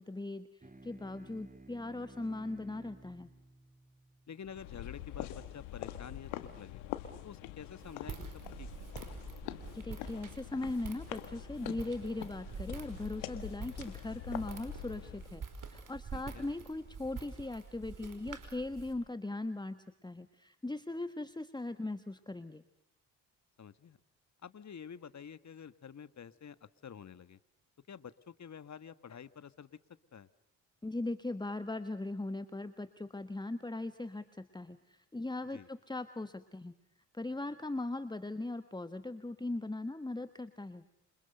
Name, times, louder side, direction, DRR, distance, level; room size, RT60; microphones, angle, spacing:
voice 1, 0.0-3.3 9.7-22.6 30.8-36.7 37.1-40.8, left 2 dB, 10° left, 11 dB, 1.4 m, -39 dB
sound 1, 0.6-5.5, right 2 dB, 20° right, 3.2 m, -56 dB
voice 2, 4.3-6.3 6.6-6.8 7.2-8.2 8.6-8.9 16.1-16.4 23.6-24.0 24.4-27.4 27.9-29.8 30.1-30.3 35.5-35.7, left 7 dB, 40° left, 15 dB, 1.5 m, -49 dB
sound 2, 4.5-15.4, left 13 dB, 80° left, 1.7 m, -45 dB
Walk footsteps, 7.8-18.9, right 5 dB, 50° right, 5.0 m, -47 dB
28.0 x 26.5 x 6.7 m, 0.77 s
hypercardioid pair, 45°, 41 cm